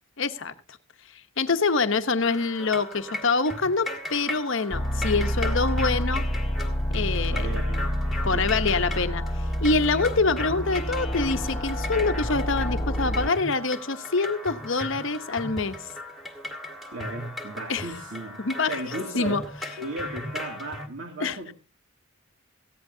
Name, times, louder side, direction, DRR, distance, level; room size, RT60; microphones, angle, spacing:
voice 1, 0.2-0.5 1.4-6.2 6.9-7.5 8.2-9.2 9.6-15.8 17.7-17.9 18.4-18.8 19.1-19.4 21.2-21.4, left 4 dB, 55° left, 0.9 m, -25 dB
sound 1, 2.2-20.9, left 1 dB, ahead, 1.6 m, -37 dB
sound 2, 4.7-13.3, equal, 20° left, 1.5 m, -28 dB
voice 2, 7.3-7.9 8.3-8.5 16.9-19.5 19.8-21.5, right 2 dB, 60° right, 2.4 m, -36 dB
19.0 x 15.0 x 2.7 m
head